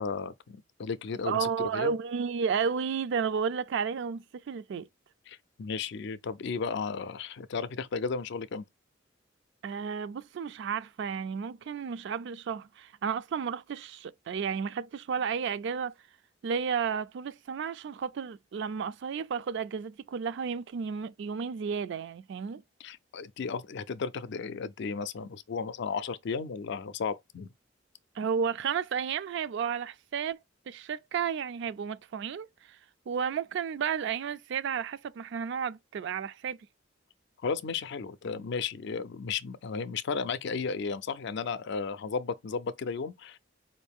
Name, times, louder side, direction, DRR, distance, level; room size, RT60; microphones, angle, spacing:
voice 1, 0.0-1.9 5.3-8.6 22.8-27.5 37.4-43.4, left 5 dB, 65° left, 0.4 m, -34 dB
voice 2, 1.2-4.9 9.6-15.9 16.4-22.6 28.2-30.4 30.7-32.8 33.1-36.6, right 6 dB, 65° right, 0.3 m, -32 dB
4.6 x 2.6 x 3.5 m
head